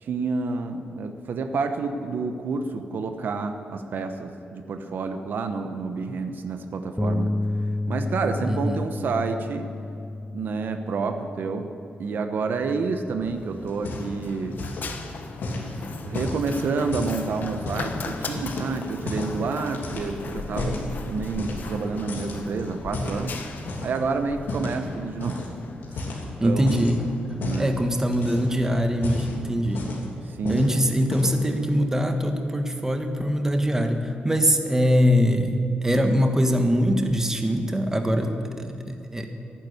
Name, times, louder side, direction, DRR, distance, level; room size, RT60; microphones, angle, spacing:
voice 1, 0.0-7.3 7.9-9.7 10.3-11.7 12.0-14.6 16.0-20.8 21.0-23.3 23.8-25.5 25.9-26.1 26.4-26.7 27.4-27.7 30.3-30.6, right 4 dB, 70° right, 6 dB, 1.0 m, -29 dB
Bass guitar, 7.0-13.2, left 2 dB, 5° left, 0.3 m, -31 dB
voice 2, 8.4-8.8 26.4-27.0 27.6-29.9 30.5-39.3, equal, 15° right, 5 dB, 1.3 m, -23 dB
Run, 13.2-29.3, left 4 dB, 60° left, 1.2 m, -38 dB
sound 1, 13.7-14.3 14.5-14.9 15.4-18.0 18.4-19.4 19.7-20.9 21.4-21.8 22.1-24.0 24.5-24.8 25.2-25.5 25.8-27.0 27.4-27.7 28.1-28.6 28.9-30.1 30.5-30.7 31.0-31.5, left 2 dB, 80° left, 3.1 m, -32 dB
11.0 x 10.5 x 9.4 m, 2.5 s
cardioid pair, 95°, 4 cm